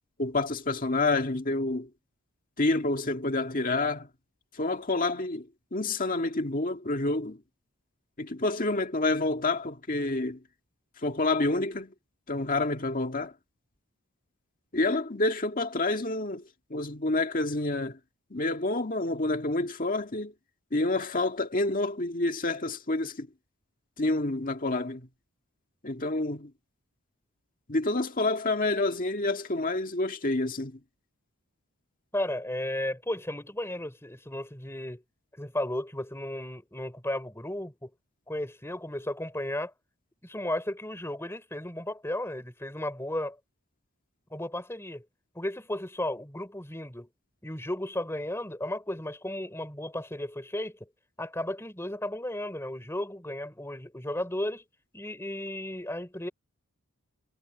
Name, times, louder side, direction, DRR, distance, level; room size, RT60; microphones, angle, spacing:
voice 1, 0.2-1.9 2.6-4.1 4.6-7.4 8.2-10.4 11.0-11.9 12.3-13.3 14.7-16.4 16.7-18.0 18.3-20.3 20.7-23.3 24.0-25.1 25.8-26.5 27.7-30.8, left 2 dB, 40° left, 1.9 m, -28 dB
voice 2, 32.1-35.0 35.3-37.9 38.3-39.7 40.2-43.4 44.3-45.1 45.3-47.1 47.4-50.9 51.2-54.6 54.9-56.3, left 1 dB, 10° left, 4.0 m, -34 dB
head